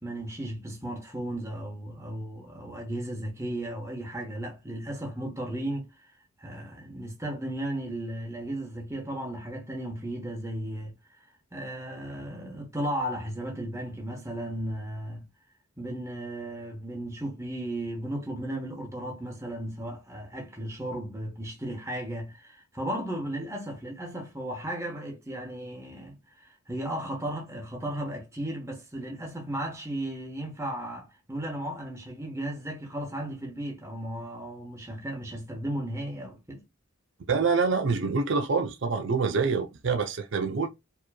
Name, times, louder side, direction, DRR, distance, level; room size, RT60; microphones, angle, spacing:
voice 1, 0.0-15.2 15.8-36.6, right 1 dB, 15° right, 1.0 m, -35 dB
voice 2, 37.3-40.7, right 4 dB, 55° right, 0.4 m, -26 dB
4.7 x 3.0 x 2.2 m
head